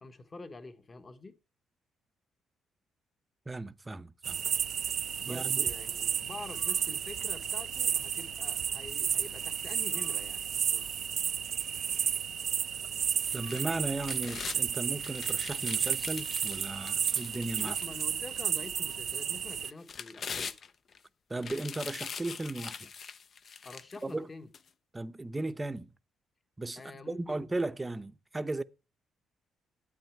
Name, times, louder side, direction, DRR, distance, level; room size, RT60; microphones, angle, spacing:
voice 1, 0.0-1.4 5.2-10.9 15.8-16.0 17.6-20.6 23.6-24.5 26.8-27.4, left 3 dB, 30° left, 1.2 m, -47 dB
voice 2, 3.5-4.4 5.3-5.7 13.3-17.7 21.3-22.9 24.0-24.3 24.9-25.9 26.6-26.8 27.1-28.6, right 2 dB, 20° right, 0.7 m, -36 dB
sound 1, 4.2-19.7, right 8 dB, 60° right, 0.4 m, -32 dB
sound 2, 13.2-14.6 15.0-18.4 18.9-19.0 19.6-21.0 21.4-24.0 24.5-24.6, left 6 dB, 50° left, 0.6 m, -42 dB
12.5 x 8.7 x 4.6 m
cardioid pair, 90°, 0 cm